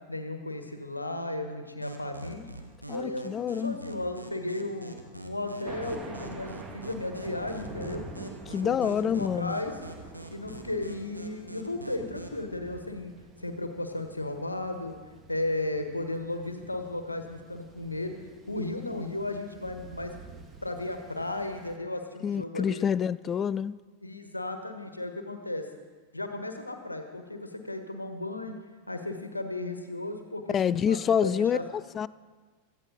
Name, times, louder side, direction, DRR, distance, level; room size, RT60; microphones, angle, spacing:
voice 1, 0.1-2.4 2.9-4.9 5.2-8.1 8.6-9.8 10.3-13.1 13.4-14.9 15.3-18.2 18.5-20.1 20.6-22.9 24.0-25.6 26.1-28.5 28.9-31.6, left 2 dB, 85° left, 1.3 m, -35 dB
sound 1, 1.8-12.4, right 1 dB, 90° right, 1.3 m, -45 dB
voice 2, 2.9-3.8 8.5-9.6 22.2-23.8 30.5-32.1, left 8 dB, 25° left, 0.3 m, -27 dB
Thunder, 5.7-21.8, right 3 dB, 20° right, 1.3 m, -47 dB
17.0 x 14.0 x 4.0 m
figure-of-eight pair, 90°, 0 cm